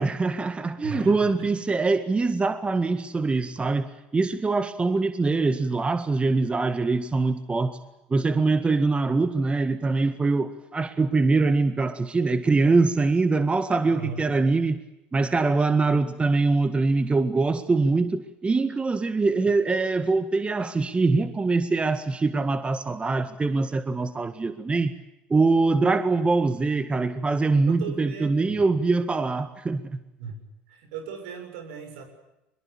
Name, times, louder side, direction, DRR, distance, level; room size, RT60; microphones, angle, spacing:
voice 1, 0.0-7.8 8.1-14.8 15.1-24.9 25.3-30.0, right 3 dB, 20° right, 11 dB, 1.9 m, -23 dB
voice 2, 0.8-1.3 13.8-14.3 27.7-28.6 30.2-32.0, right 5 dB, 80° right, 6 dB, 7.0 m, -37 dB
23.5 x 21.5 x 8.6 m, 0.89 s
hypercardioid pair, 75°, 5 cm